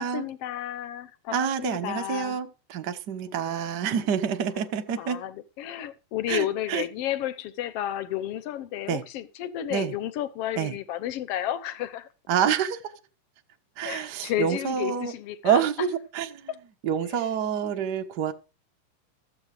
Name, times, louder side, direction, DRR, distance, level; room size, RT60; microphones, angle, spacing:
voice 1, 0.0-2.4 3.3-3.4 5.0-12.1 13.8-15.6 16.5-16.6 17.0-17.3, left 12 dB, 70° left, 1.5 m, -32 dB
voice 2, 1.3-5.2 6.3-6.8 8.9-9.0 9.7-9.9 10.6-10.7 12.3-12.8 13.8-15.1 15.4-15.9 16.1-16.5 16.8-18.3, right 8 dB, 65° right, 1.0 m, -27 dB
14.5 x 8.0 x 5.0 m
omnidirectional pair, 3.8 m